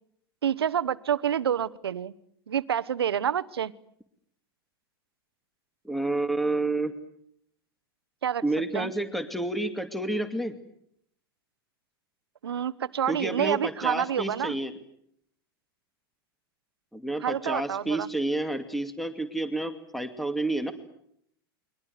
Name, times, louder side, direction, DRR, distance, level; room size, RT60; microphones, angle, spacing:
voice 1, 0.4-2.1 2.5-3.7 8.2-8.4 8.7-8.9 12.4-14.6 17.2-18.1, right 9 dB, 85° right, 15 dB, 1.1 m, -28 dB
voice 2, 5.8-6.9 8.4-10.5 13.1-14.7 16.9-20.7, right 2 dB, ahead, 9 dB, 2.5 m, -29 dB
29.5 x 23.5 x 8.1 m, 0.71 s
hypercardioid pair, 100°, 13 cm